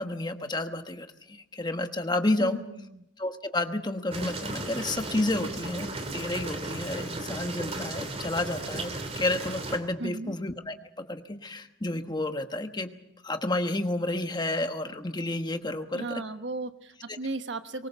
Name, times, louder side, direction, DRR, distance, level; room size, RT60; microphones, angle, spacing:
voice 1, 0.0-2.6 3.2-10.7 11.1-12.9 13.2-16.2, left 2 dB, 20° left, 7 dB, 1.2 m, -30 dB
voice 2, 2.4-3.0 10.0-10.3 15.9-17.9, right 3 dB, 65° right, 9 dB, 1.2 m, -36 dB
sound 1, 4.1-9.8, right 2 dB, 30° right, 3.0 m, -35 dB
24.0 x 19.5 x 7.0 m, 0.81 s
head